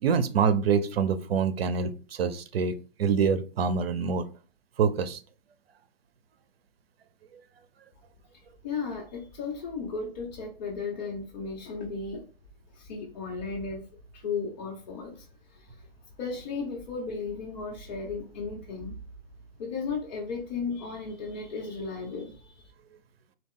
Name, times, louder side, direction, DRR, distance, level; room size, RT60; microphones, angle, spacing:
voice 1, 0.0-2.7 3.0-4.2 4.8-5.2, right 6 dB, 75° right, 12 dB, 0.6 m, -25 dB
voice 2, 8.3-12.2 12.7-13.9 14.1-15.8 16.2-19.0 19.6-22.6, left 4 dB, 45° left, -3 dB, 1.0 m, -35 dB
4.2 x 2.3 x 3.7 m, 0.37 s
hypercardioid pair, 140°, 30 cm